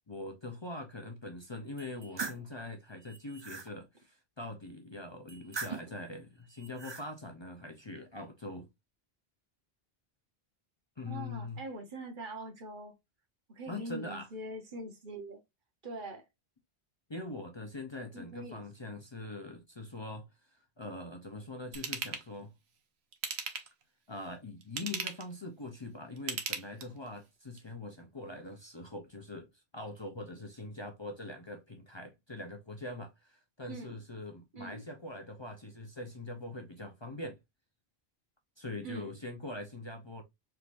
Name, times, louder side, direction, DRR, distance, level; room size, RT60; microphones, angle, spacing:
voice 1, 0.1-8.7 11.0-11.6 13.7-14.3 17.1-20.3 20.8-22.5 24.1-37.4 38.6-40.2, left 2 dB, 30° left, 0.7 m, -43 dB
sound 1, 1.8-2.5 3.0-3.7 5.3-6.0 6.6-7.1, right 4 dB, 30° right, 0.5 m, -41 dB
voice 2, 11.0-12.9 13.5-15.4 15.8-16.2 18.1-18.6 33.7-34.0 34.5-34.8 38.8-39.1, right 1 dB, 55° right, 1.2 m, -43 dB
Ratchet pawl / Tools, 21.7-22.2 23.1-23.8 24.6-25.3 26.2-27.1 27.6-27.7, right 6 dB, 90° right, 1.1 m, -37 dB
4.5 x 3.5 x 2.5 m
omnidirectional pair, 1.0 m